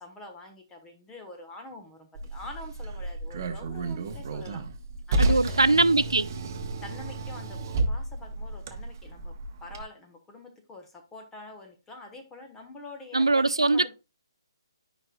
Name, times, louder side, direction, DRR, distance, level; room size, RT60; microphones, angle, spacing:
voice 1, 0.0-4.6 5.1-5.6 6.8-13.9, left 2 dB, 10° left, 1.3 m, -46 dB
Car, 2.1-9.8, right 2 dB, 40° right, 0.9 m, -31 dB
voice 2, 5.2-6.3 13.1-13.9, right 3 dB, 85° right, 0.4 m, -22 dB
10.5 x 5.3 x 2.3 m
figure-of-eight pair, 140°, 3 cm